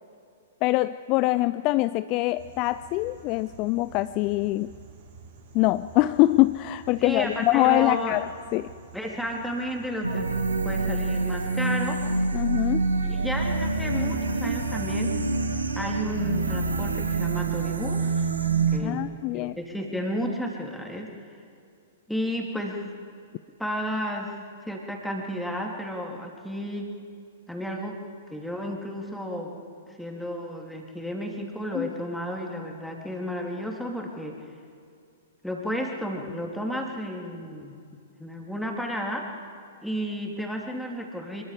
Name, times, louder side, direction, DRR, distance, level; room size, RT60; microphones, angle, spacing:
voice 1, 0.6-4.7 5.5-8.7 12.3-12.9 18.8-19.6 31.7-31.9, left 18 dB, 35° left, 15 dB, 0.4 m, -24 dB
sound 1, 2.4-17.8, right 4 dB, 50° right, 5.3 m, -48 dB
voice 2, 7.0-8.2 8.9-10.3 10.6-12.0 13.0-15.1 15.7-18.3 18.7-19.1 19.3-21.1 22.1-22.8 23.6-24.4 24.6-26.9 27.5-28.0 28.3-29.6 30.0-34.4 35.4-37.8 38.2-39.4 39.8-41.4, equal, ahead, 0 dB, 2.9 m, -32 dB
sound 2, 10.0-18.8, right 3 dB, 80° right, 1.7 m, -26 dB
25.0 x 22.0 x 5.1 m, 2.4 s
figure-of-eight pair, 110°, 0 cm